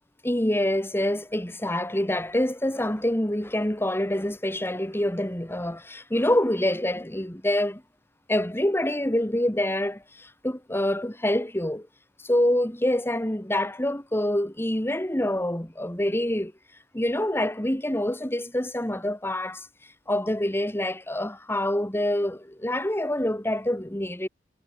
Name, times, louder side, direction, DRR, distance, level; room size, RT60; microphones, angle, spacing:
voice 1, 0.2-7.8 8.3-11.9 12.2-16.5 16.9-19.7 20.1-24.3, left 1 dB, 15° left, 2.2 m, -26 dB
head